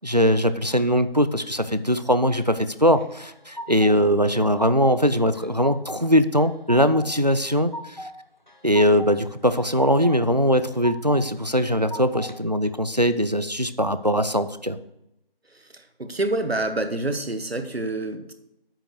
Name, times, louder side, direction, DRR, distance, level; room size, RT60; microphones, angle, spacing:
voice 1, 0.0-8.1 8.6-14.8, equal, 45° right, 12 dB, 0.5 m, -21 dB
sound 1, 2.9-4.0 4.3-5.0 5.3-6.0 6.4-7.1 7.4-8.1 8.5-9.1 9.5-10.2 10.5-11.2 11.6-12.4, equal, 50° left, 0.9 m, -37 dB
voice 2, 16.0-18.3, right 2 dB, 85° right, 9 dB, 1.2 m, -27 dB
8.7 x 5.5 x 6.8 m, 0.85 s
figure-of-eight pair, 180°, 30 cm